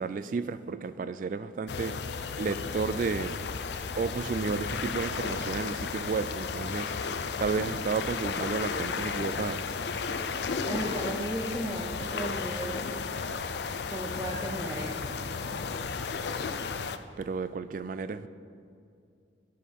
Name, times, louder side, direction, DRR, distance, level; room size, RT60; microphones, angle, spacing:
voice 1, 0.0-1.9 2.4-3.4 4.0-6.9 7.4-9.7 17.2-18.3, right 4 dB, 45° right, 12 dB, 0.3 m, -32 dB
sound 1, 1.7-17.0, left 5 dB, 70° left, 0.5 m, -34 dB
voice 2, 10.6-12.8 13.9-15.2, right 1 dB, 15° right, -2 dB, 0.7 m, -35 dB
12.5 x 6.4 x 5.3 m, 2.4 s
head